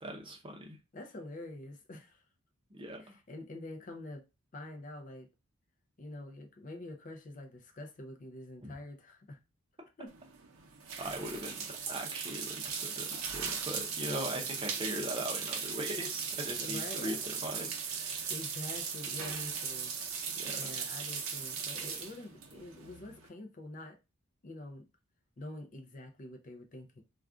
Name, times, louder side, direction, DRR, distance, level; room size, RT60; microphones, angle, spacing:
voice 1, 0.0-0.8 2.7-3.1 8.6-8.7 11.0-18.3 20.3-20.7, right 1 dB, 25° right, 0.6 m, -40 dB
voice 2, 0.9-2.2 3.0-4.2 4.5-5.3 6.0-9.4 10.0-10.1 16.6-17.2 18.3-19.9 20.6-24.0 24.4-24.8 25.4-27.0, left 1 dB, 35° left, 0.4 m, -46 dB
sound 1, 10.1-23.3, right 6 dB, 75° right, 0.6 m, -38 dB
2.4 x 2.3 x 3.5 m
head